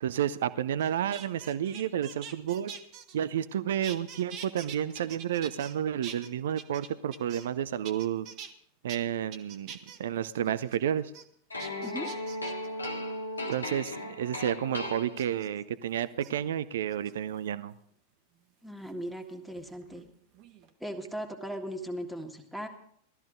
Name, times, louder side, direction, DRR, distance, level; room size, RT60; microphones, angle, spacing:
voice 1, 0.0-2.7 3.1-8.3 8.8-9.7 10.0-11.1 13.5-17.7, right 10 dB, 60° right, 16 dB, 0.6 m, -31 dB
sound 1, 0.8-3.5 3.8-5.7 6.0-7.6 7.8-8.5 8.9-9.0 9.3-10.0 10.4-10.8 11.1-11.2 11.6-12.7 13.5-13.9 15.2-15.5 16.1-16.3 16.9-17.5 18.9-20.1 20.3-20.7, right 7 dB, 40° right, 1.3 m, -45 dB
sound 2, 11.5-15.6, left 1 dB, 80° left, 1.7 m, -37 dB
voice 2, 18.6-20.1 20.8-22.7, right 1 dB, ahead, 4 dB, 1.8 m, -38 dB
17.5 x 13.5 x 3.8 m, 0.66 s
figure-of-eight pair, 90°, 0 cm